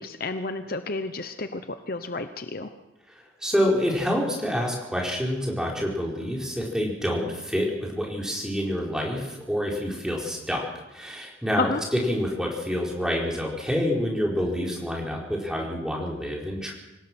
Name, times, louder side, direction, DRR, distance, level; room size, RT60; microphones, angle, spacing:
voice 1, 0.0-2.7 11.6-11.8, left 3 dB, 50° left, 9 dB, 0.9 m, -31 dB
voice 2, 3.4-10.6 10.9-16.7, equal, 5° right, -2 dB, 4.5 m, -27 dB
26.5 x 17.5 x 6.2 m, 0.99 s
head